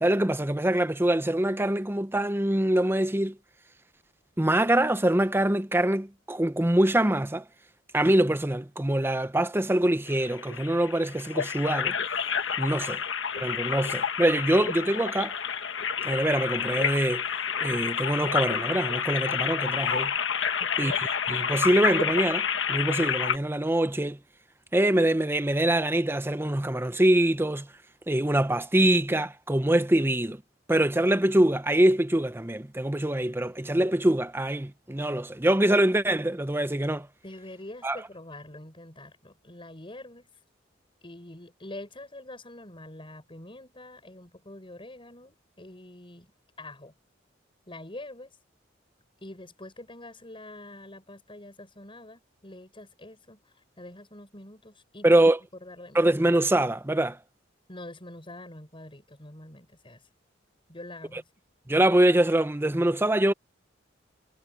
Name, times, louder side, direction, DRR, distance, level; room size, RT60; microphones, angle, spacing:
voice 1, 0.0-3.4 4.4-7.4 7.9-11.9 12.6-13.0 13.4-15.3 16.0-17.2 17.6-20.1 20.8-24.2 24.7-27.7 28.1-30.4 30.7-37.1 37.8-38.0 55.0-55.4 55.9-57.2 61.7-63.3, right 1 dB, 10° right, 0.8 m, -24 dB
sound 1, 10.1-23.4, left 7 dB, 70° left, 1.4 m, -29 dB
voice 2, 20.6-21.1 37.2-40.3 41.0-46.3 46.6-46.9 47.7-48.4 49.2-55.2 55.6-56.0 57.7-60.0 60.7-61.3, left 1 dB, 30° left, 6.4 m, -45 dB
head